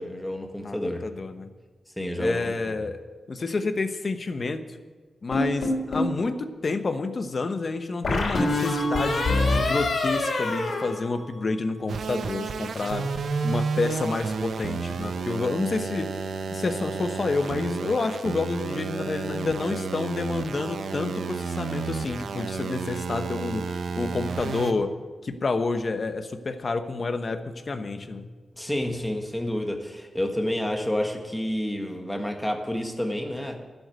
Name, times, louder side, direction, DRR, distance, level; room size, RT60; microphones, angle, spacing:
voice 1, 0.0-1.0 2.0-2.7 28.6-33.6, left 1 dB, 5° left, 3 dB, 1.7 m, -29 dB
voice 2, 1.0-1.5 2.2-3.0 3.3-4.6 5.2-16.1 16.5-24.9 25.2-28.3, left 3 dB, 45° left, 8 dB, 1.0 m, -29 dB
sound 1, 5.3-6.2 8.0-11.7, left 2 dB, 65° left, 3.5 m, -25 dB
sound 2, 11.9-24.7, right 5 dB, 85° right, 0.8 m, -31 dB
12.0 x 8.1 x 9.1 m, 1.3 s
wide cardioid pair, 115°, 0 cm